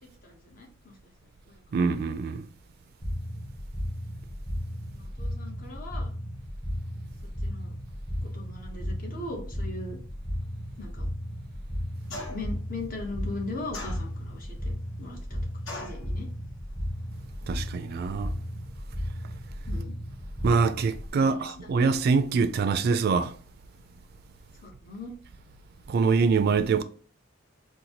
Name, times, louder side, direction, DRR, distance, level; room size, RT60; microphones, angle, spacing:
voice 1, 0.0-0.9 1.5-1.6 4.9-6.1 7.4-7.7 8.2-10.0 10.8-11.1 12.1-14.6 15.0-15.4 15.7-16.3 19.7-20.0 21.1-21.4 24.6-25.1, left 2 dB, 45° left, 1.0 m, -39 dB
voice 2, 1.7-2.5 17.4-18.3 20.4-23.3 25.9-26.8, right 4 dB, 55° right, 0.3 m, -24 dB
sound 1, 3.0-21.1, equal, 15° left, 1.2 m, -35 dB
sound 2, 12.1-12.6 13.7-14.4 15.7-16.1, left 2 dB, 70° left, 1.1 m, -39 dB
4.0 x 2.2 x 2.9 m
head